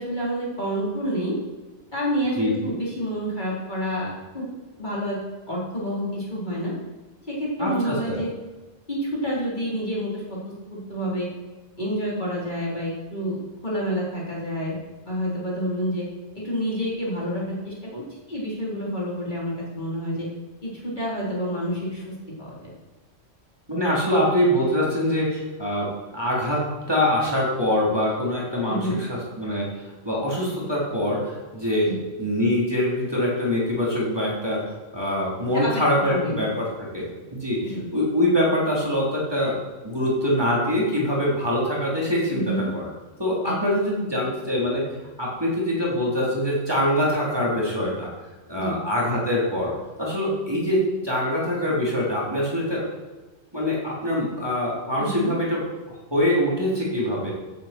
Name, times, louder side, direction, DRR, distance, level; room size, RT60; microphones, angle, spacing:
voice 1, 0.0-1.4 1.9-4.5 4.8-5.2 5.5-6.7 7.3-8.3 8.9-11.3 11.8-13.4 13.6-14.8 15.1-16.1 16.3-18.0 18.3-20.3 20.6-22.7 28.7-29.0 31.8-32.0 35.6-35.8 36.1-36.4 37.6-37.9 42.3-42.6 43.4-43.5 48.5-48.7 55.0-55.3, equal, 35° left, -6 dB, 4.2 m, -28 dB
voice 2, 2.4-2.7 7.6-8.2 23.7-29.7 30.0-31.9 32.2-36.7 36.9-37.6 37.9-39.6 39.8-42.9 43.2-44.8 45.2-48.1 48.5-49.7 50.0-52.8 53.5-55.6 56.1-57.3, left 1 dB, 20° right, -6 dB, 4.0 m, -24 dB
15.0 x 11.5 x 4.6 m, 1.2 s
omnidirectional pair, 1.3 m